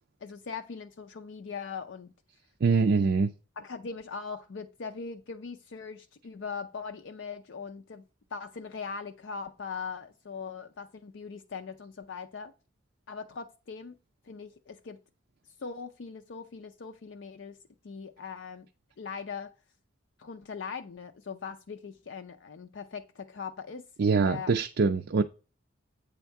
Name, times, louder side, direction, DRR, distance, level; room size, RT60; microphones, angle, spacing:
voice 1, 0.2-2.1 3.6-8.0 8.3-12.5 13.1-14.0 14.2-15.0 15.6-17.6 17.8-18.7 19.0-19.5 20.2-23.8 24.2-24.5, left 5 dB, 65° left, 0.5 m, -40 dB
voice 2, 2.6-3.3 24.0-25.2, right 4 dB, 55° right, 0.4 m, -24 dB
8.1 x 3.6 x 4.6 m
head